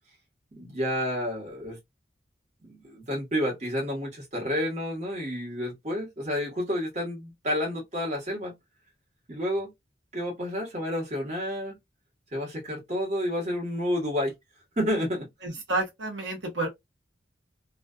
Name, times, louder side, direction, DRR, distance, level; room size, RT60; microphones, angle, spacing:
voice 1, 0.5-1.8 2.6-8.5 9.3-9.7 10.1-11.8 12.3-14.3 14.8-15.3, equal, 40° right, 1.1 m, -30 dB
voice 2, 15.4-16.7, right 2 dB, 85° right, 0.9 m, -30 dB
2.4 x 2.3 x 2.3 m
head